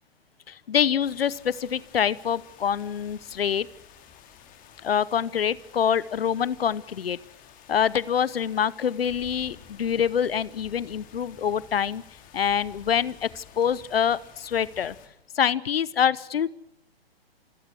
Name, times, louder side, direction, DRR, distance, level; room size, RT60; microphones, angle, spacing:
voice 1, 0.5-3.7 4.8-7.2 7.7-12.0 12.3-14.9 15.3-16.5, left 8 dB, 70° left, 20 dB, 1.0 m, -25 dB
sound 1, 1.0-15.1, left 8 dB, 25° left, 4.2 m, -51 dB
27.5 x 23.0 x 6.3 m, 0.73 s
figure-of-eight pair, 120°, 31 cm